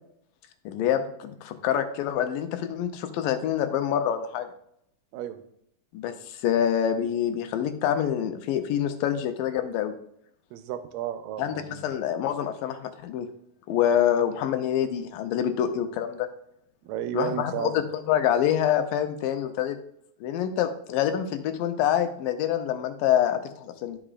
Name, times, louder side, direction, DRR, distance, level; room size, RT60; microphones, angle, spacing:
voice 1, 0.7-4.5 5.9-9.9 11.4-13.3 13.7-16.3 17.1-19.8 20.2-24.0, left 10 dB, 85° left, 7 dB, 2.3 m, -26 dB
voice 2, 10.5-11.8 16.8-17.8, right 10 dB, 80° right, 9 dB, 2.2 m, -33 dB
12.5 x 4.9 x 2.4 m, 0.71 s
omnidirectional pair, 4.0 m